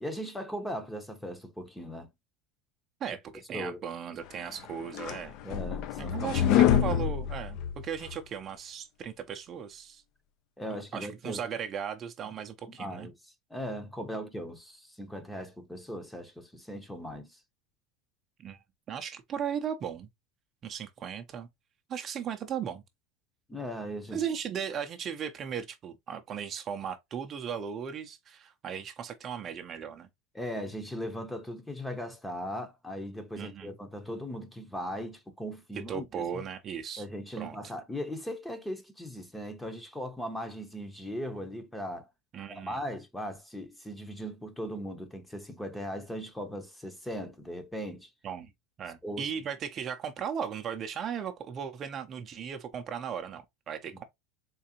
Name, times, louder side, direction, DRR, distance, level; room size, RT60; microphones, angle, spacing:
voice 1, 0.0-2.1 3.5-3.8 5.4-6.7 10.6-11.4 12.8-13.1 13.5-17.4 23.5-24.3 30.3-36.4 37.0-42.1 42.5-48.1 49.0-49.3, equal, 5° left, 0.7 m, -38 dB
voice 2, 3.0-5.3 6.0-10.0 10.9-13.1 18.4-20.1 20.6-21.5 21.9-22.8 24.1-30.1 33.4-33.7 35.9-37.0 37.4-37.6 42.3-42.8 48.2-48.5 48.8-54.0, right 8 dB, 35° right, 0.6 m, -37 dB
sound 1, 4.5-8.2, left 10 dB, 55° left, 0.4 m, -26 dB
3.7 x 3.2 x 2.8 m
supercardioid pair, 130°, 0 cm